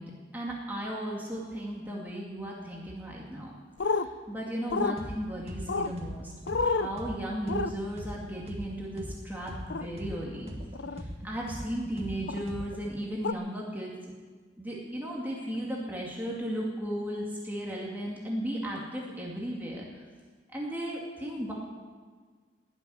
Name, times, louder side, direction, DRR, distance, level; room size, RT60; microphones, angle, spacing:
voice 1, 0.0-3.5 3.8-6.3 6.6-10.5 10.9-13.9 14.6-20.0 20.5-21.5, equal, 10° right, -4 dB, 2.3 m, -35 dB
sound 1, 3.8-4.1 4.7-5.0 5.7-5.9 6.5-6.9 7.5-7.7 9.7-9.9 10.7-11.0 12.3-12.4 13.2-13.3, left 4 dB, 80° left, 0.6 m, -29 dB
sound 2, 5.0-5.2 5.5-9.2 9.5-12.9, equal, 35° right, 1.9 m, -40 dB
19.5 x 7.1 x 9.5 m, 1.5 s
head